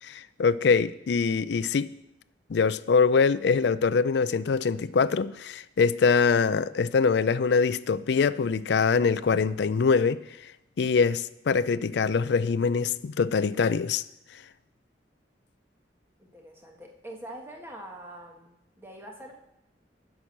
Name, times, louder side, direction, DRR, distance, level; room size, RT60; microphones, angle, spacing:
voice 1, 0.1-1.9 2.5-10.2 10.8-14.0, left 5 dB, 70° left, 0.4 m, -23 dB
voice 2, 16.3-19.3, right 1 dB, 15° right, 1.4 m, -44 dB
9.9 x 6.1 x 7.3 m
head